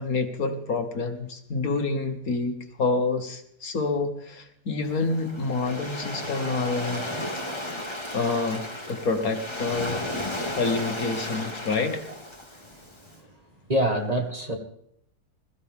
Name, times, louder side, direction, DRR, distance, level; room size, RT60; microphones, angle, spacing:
voice 1, 0.0-7.1 7.9-10.0 10.6-12.0, left 3 dB, 60° left, 6 dB, 1.9 m, -28 dB
Waves surf, 4.8-13.1, left 1 dB, 15° left, 2.2 m, -34 dB
voice 2, 13.7-14.6, right 1 dB, 25° right, 2 dB, 1.9 m, -24 dB
21.0 x 14.5 x 3.7 m, 0.71 s
omnidirectional pair, 1.8 m